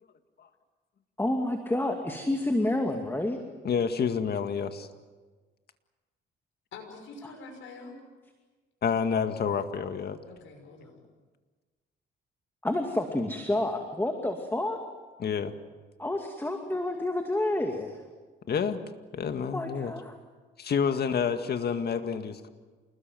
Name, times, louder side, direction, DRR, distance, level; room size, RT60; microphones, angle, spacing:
voice 1, 1.2-3.4 12.6-14.8 16.0-18.0 19.5-20.1, left 1 dB, 10° left, 4 dB, 2.5 m, -29 dB
voice 2, 3.6-4.9 8.8-10.2 15.2-15.5 18.5-18.8 19.1-19.9 20.6-22.5, left 6 dB, 55° left, 8 dB, 2.1 m, -28 dB
voice 3, 6.7-7.9 10.3-11.0, left 3 dB, 75° left, 3 dB, 6.2 m, -46 dB
28.5 x 20.5 x 7.9 m, 1.4 s
cardioid pair, 90°, 20 cm